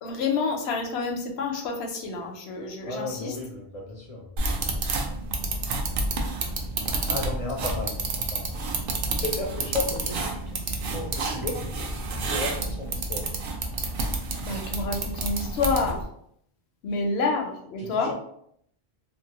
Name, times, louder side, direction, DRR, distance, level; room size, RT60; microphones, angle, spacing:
voice 1, 0.0-3.4 14.4-16.0 16.8-18.1, left 4 dB, 85° left, 3 dB, 0.9 m, -28 dB
voice 2, 2.8-4.3 7.1-8.4 9.0-11.6 12.0-13.3 17.8-18.1, left 3 dB, 50° left, -1 dB, 0.4 m, -34 dB
sound 1, 4.4-16.0, right 3 dB, 65° right, 0.7 m, -29 dB
2.6 x 2.6 x 2.8 m, 0.70 s
omnidirectional pair, 1.1 m